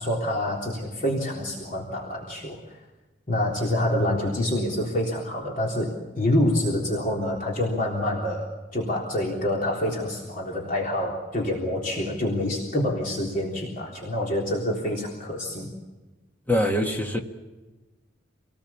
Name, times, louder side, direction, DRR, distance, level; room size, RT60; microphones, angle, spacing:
voice 1, 0.0-2.6 3.3-15.7, left 1 dB, 45° left, -3 dB, 3.7 m, -27 dB
voice 2, 16.5-17.2, left 1 dB, 10° left, 2 dB, 1.6 m, -23 dB
27.5 x 19.0 x 7.3 m, 1.2 s
head